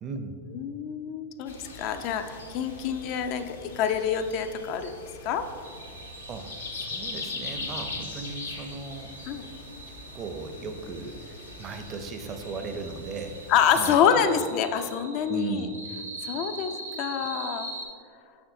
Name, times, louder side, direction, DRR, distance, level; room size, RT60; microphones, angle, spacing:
voice 1, 0.0-0.4 6.3-9.2 10.1-14.0 14.3-14.5 15.3-15.8, right 4 dB, 35° right, 7 dB, 0.6 m, -37 dB
voice 2, 0.5-4.9 5.2-5.5 9.3-9.4 13.5-15.7 16.2-16.7 17.0-17.7, left 8 dB, 50° left, 9 dB, 0.4 m, -26 dB
sound 1, 1.5-14.0, left 3 dB, 85° left, 0.7 m, -41 dB
sound 2, 5.6-17.9, right 2 dB, 85° right, 0.7 m, -43 dB
6.9 x 5.5 x 2.7 m, 2.2 s
hypercardioid pair, 95°, 0 cm